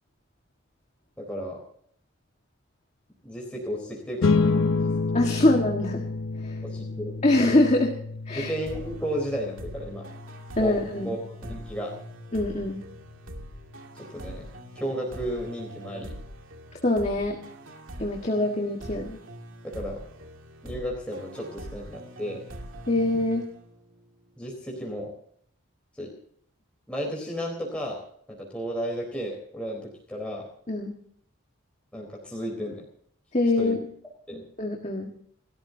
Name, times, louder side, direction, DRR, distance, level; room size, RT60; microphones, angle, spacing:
voice 1, 1.2-1.6 3.2-4.9 6.6-7.1 8.3-10.1 10.6-10.8 11.0-11.2 11.5-11.9 14.0-14.5 14.8-16.1 19.6-20.0 20.6-22.4 24.4-25.1 26.0-26.1 26.9-28.0 28.3-30.5 31.9-32.8 33.6-33.8 34.3-34.4, equal, 5° left, -2 dB, 3.9 m, -33 dB
sound 1, 4.2-15.0, left 3 dB, 70° left, 1.0 m, -30 dB
voice 2, 5.1-6.0 6.4-6.6 7.2-7.9 8.3-8.5 10.6-11.1 12.3-12.8 16.8-17.4 18.0-19.2 22.9-23.4 30.7-30.9 33.3-33.8 34.6-35.1, left 2 dB, 30° left, 2 dB, 1.7 m, -24 dB
sound 2, 8.7-24.1, right 1 dB, 65° right, 2.4 m, -43 dB
29.0 x 13.5 x 2.8 m, 0.62 s
head